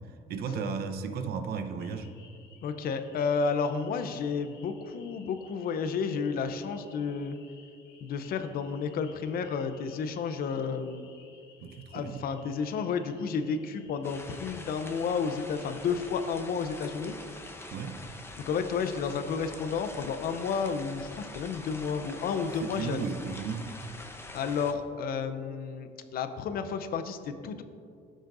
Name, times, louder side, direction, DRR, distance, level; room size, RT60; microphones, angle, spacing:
voice 1, 0.3-2.1 11.6-12.2 17.7-18.0 22.6-23.7, right 5 dB, 65° right, 8 dB, 0.9 m, -34 dB
sound 1, 1.8-16.3, left 6 dB, 80° left, 1.3 m, -58 dB
voice 2, 2.6-7.4 8.0-11.1 11.9-17.2 18.4-23.0 24.3-27.6, left 5 dB, 60° left, 9 dB, 0.7 m, -31 dB
sound 2, 14.0-24.7, left 2 dB, 15° left, 0.8 m, -45 dB
16.0 x 6.4 x 2.6 m, 2.3 s
cardioid pair, 110°, 17 cm